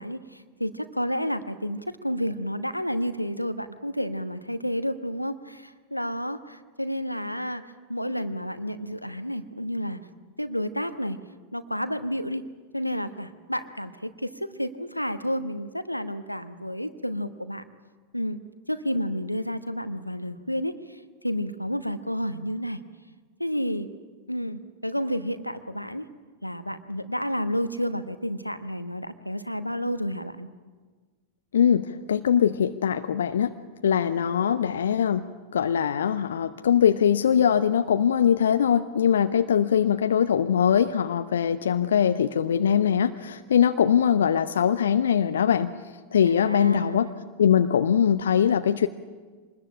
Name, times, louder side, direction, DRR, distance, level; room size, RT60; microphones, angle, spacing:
voice 1, 0.0-7.6 7.9-10.0 10.4-11.2 11.5-12.4 12.7-17.6 18.1-18.4 18.7-22.8 23.4-23.9 24.3-26.1 26.4-30.5 46.2-47.2, equal, 90° left, 11 dB, 1.1 m, -30 dB
voice 2, 31.5-33.5 33.8-35.2 35.5-45.7 46.1-47.1 47.4-48.9, left 8 dB, 65° left, 9 dB, 0.8 m, -22 dB
25.0 x 20.5 x 8.8 m, 1.4 s
figure-of-eight pair, 90°, 0 cm